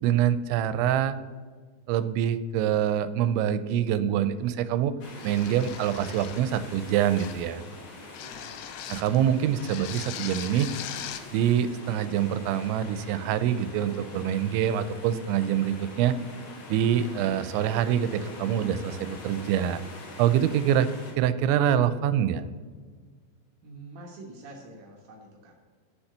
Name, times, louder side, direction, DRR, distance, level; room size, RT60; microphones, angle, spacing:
voice 1, 0.0-1.2 1.9-4.9 5.2-7.6 8.9-10.7 11.3-16.1 16.7-19.8 20.2-20.9 21.2-22.5, right 10 dB, 85° right, 13 dB, 2.9 m, -25 dB
sound 1, 5.0-21.1, left 3 dB, 55° left, 2.5 m, -44 dB
sound 2, 5.2-6.5 7.2-7.5 8.1-9.2 9.6-11.3, left 10 dB, 85° left, 2.4 m, -40 dB
voice 2, 8.2-9.0 23.6-25.5, right 2 dB, 65° right, 0 dB, 2.1 m, -46 dB
7.2 x 7.1 x 6.6 m, 1.6 s
omnidirectional pair, 5.2 m